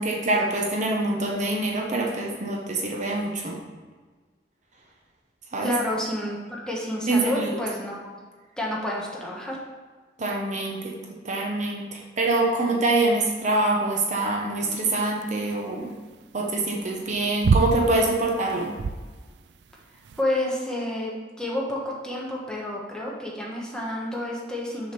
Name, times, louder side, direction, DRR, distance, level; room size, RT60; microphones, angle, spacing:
voice 1, 0.0-3.6 5.5-5.7 7.1-7.6 10.2-10.9 11.2-15.9 16.3-18.7, right 2 dB, 45° right, -1 dB, 1.0 m, -25 dB
voice 2, 5.6-6.4 6.7-8.0 8.6-9.6 20.2-24.9, left 1 dB, 5° left, -4 dB, 1.4 m, -29 dB
sound 1, 14.7-20.2, right 4 dB, 70° right, 0.4 m, -28 dB
6.6 x 5.1 x 5.4 m, 1.4 s
head